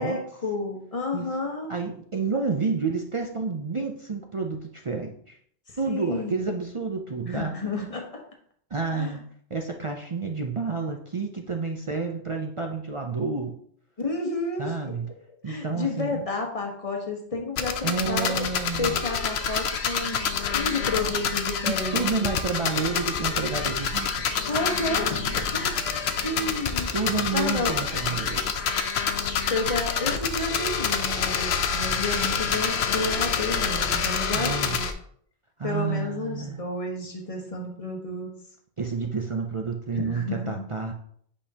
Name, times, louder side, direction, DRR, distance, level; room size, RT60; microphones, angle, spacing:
voice 1, 0.0-1.7 5.7-6.4 7.3-8.2 9.0-9.2 14.0-14.9 15.5-18.5 18.8-20.2 20.5-22.5 24.2-26.0 26.2-26.9 27.3-27.7 29.5-34.9 35.6-38.3 39.9-40.7, left 2 dB, 30° left, 1 dB, 1.3 m, -31 dB
voice 2, 1.7-5.4 5.8-7.5 8.7-9.2 9.5-13.6 14.6-15.1 15.4-16.2 17.8-19.0 21.7-24.3 26.9-28.4 34.3-34.8 35.6-36.6 38.8-40.9, right 4 dB, 40° right, 3 dB, 0.5 m, -29 dB
sound 1, 17.6-34.9, left 6 dB, 70° left, 0.9 m, -27 dB
sound 2, 22.3-28.5, equal, 5° right, 0.9 m, -45 dB
8.4 x 5.3 x 2.8 m, 0.62 s
omnidirectional pair, 1.2 m